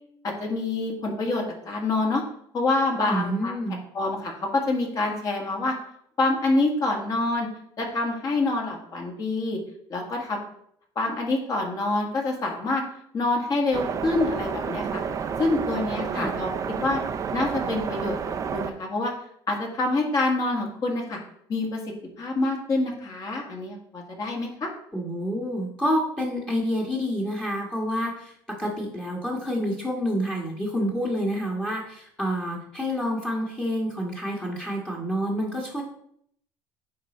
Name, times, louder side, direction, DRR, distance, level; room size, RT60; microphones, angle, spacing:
voice 1, 0.2-2.2 2.5-3.6 3.9-5.7 6.2-7.5 7.8-9.6 9.9-10.4 11.0-12.8 13.1-15.0 15.4-16.5 16.8-17.0 17.3-18.2 18.5-19.1 19.5-21.2 21.5-21.8 22.2-24.7, left 2 dB, 40° left, 0 dB, 1.9 m, -26 dB
voice 2, 3.0-3.8 16.1-16.4 24.9-35.8, equal, 10° left, -3 dB, 1.4 m, -28 dB
sound 1, 13.7-18.7, right 6 dB, 35° right, 0.6 m, -30 dB
9.2 x 3.7 x 4.3 m, 0.69 s
cardioid pair, 130°, 10 cm